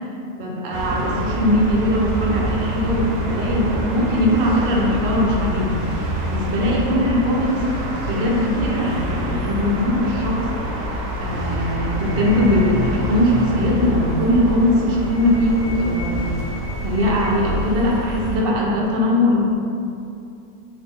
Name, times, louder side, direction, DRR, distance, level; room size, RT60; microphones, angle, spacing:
voice 1, 0.4-7.6 8.1-10.5 10.7-16.3 16.8-19.4, left 1 dB, 90° right, -3 dB, 1.3 m, -20 dB
sound 1, 0.7-18.4, equal, 70° right, 0.9 m, -26 dB
sound 2, 1.2-16.4, left 1 dB, 85° left, 1.4 m, -40 dB
3.8 x 2.0 x 3.5 m, 2.6 s
omnidirectional pair, 1.8 m